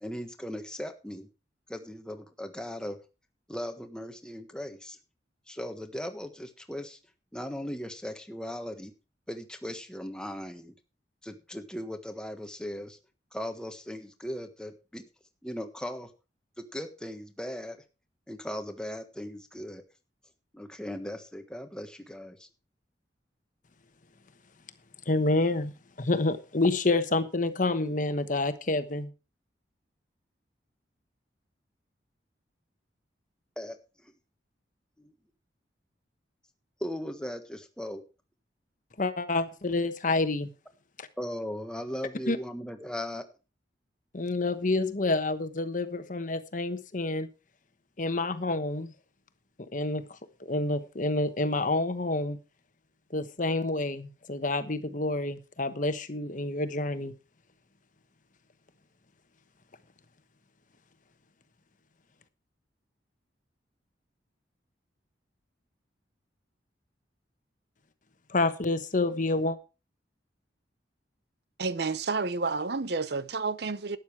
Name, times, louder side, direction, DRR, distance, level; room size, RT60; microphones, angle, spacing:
voice 1, 0.0-1.3 1.7-3.0 3.5-5.0 5.5-7.0 7.3-8.9 9.3-10.7 11.2-13.0 13.3-15.0 15.4-16.1 16.6-17.8 18.3-19.8 20.5-22.5 33.6-33.8 34.0-34.1 35.0-35.1 36.8-38.0 41.2-43.2, equal, 5° left, 1.4 m, -38 dB
voice 2, 25.1-25.7 26.0-29.1 39.0-40.5 41.0-41.1 42.3-42.4 44.1-47.3 48.0-48.9 49.6-52.4 53.1-57.1 68.3-69.6, left 2 dB, 45° left, 1.2 m, -28 dB
voice 3, 71.6-74.0, right 4 dB, 60° right, 0.7 m, -30 dB
12.5 x 9.2 x 4.7 m
head